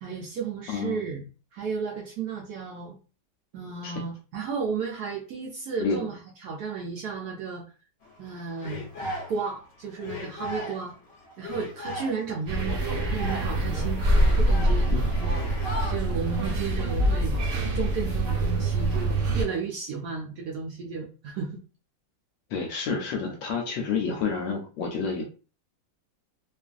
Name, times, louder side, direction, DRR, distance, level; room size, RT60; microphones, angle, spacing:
voice 1, 0.0-1.2 1.5-3.0 3.5-7.6 8.2-8.9 9.3-10.9 11.4-14.9 15.2-15.4 15.9-17.4 17.7-21.6, right 5 dB, 75° right, 0 dB, 0.9 m, -33 dB
voice 2, 0.7-1.0 3.8-4.0 5.8-6.0 14.9-15.0 22.5-25.2, left 5 dB, 75° left, 1 dB, 1.2 m, -29 dB
sound 1, 8.0-9.7 10.0-15.9, left 2 dB, 55° left, 0.8 m, -37 dB
sound 2, 12.5-19.4, right 1 dB, 50° right, 1.1 m, -25 dB
3.0 x 2.5 x 2.4 m, 0.35 s
omnidirectional pair, 2.1 m